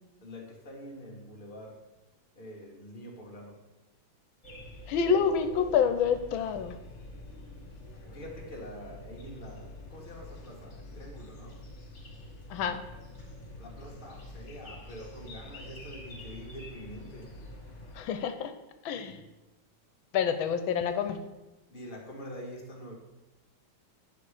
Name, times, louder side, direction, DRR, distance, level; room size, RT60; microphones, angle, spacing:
voice 1, 0.2-1.9 2.3-3.7 8.0-11.7 13.6-17.4 21.7-22.9, equal, 25° left, -2 dB, 1.8 m, -45 dB
sound 1, 4.4-18.0, left 1 dB, 50° left, 2.4 m, -46 dB
voice 2, 4.9-6.8 12.5-12.8 17.9-18.5 18.8-19.2 20.1-21.2, left 7 dB, 85° left, 9 dB, 1.5 m, -27 dB
9.8 x 6.1 x 4.9 m, 1.0 s
omnidirectional pair, 2.2 m